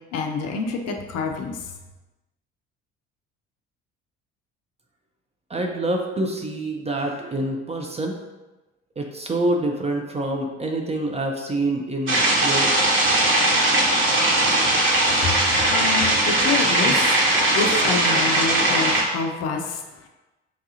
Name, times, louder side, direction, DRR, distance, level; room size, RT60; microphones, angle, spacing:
voice 1, 0.1-1.6 15.2-17.2 17.5-20.1, left 4 dB, 45° left, 3 dB, 0.5 m, -27 dB
voice 2, 5.5-8.1 9.0-12.8, right 1 dB, 20° right, 1 dB, 0.5 m, -26 dB
sound 1, 12.1-19.0, right 1 dB, 35° right, 1.2 m, -19 dB
4.6 x 2.3 x 2.8 m, 1.1 s
figure-of-eight pair, 55°, 36 cm